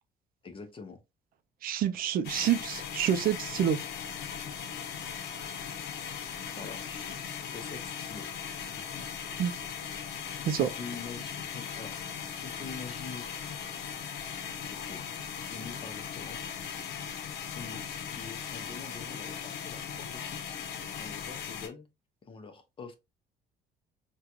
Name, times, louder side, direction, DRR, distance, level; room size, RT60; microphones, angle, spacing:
voice 1, 0.4-1.0 6.6-8.3 8.6-9.1 10.6-13.3 14.6-15.0 15.5-16.4 17.6-17.8 18.1-20.6 21.0-21.9 22.2-22.9, left 5 dB, 30° left, 0.7 m, -45 dB
voice 2, 1.6-3.8 9.4-9.5 10.5-10.7, right 10 dB, 60° right, 0.4 m, -27 dB
sound 1, 2.2-21.7, left 7 dB, 80° left, 0.7 m, -39 dB
3.7 x 2.2 x 2.9 m
cardioid pair, 110°, 17 cm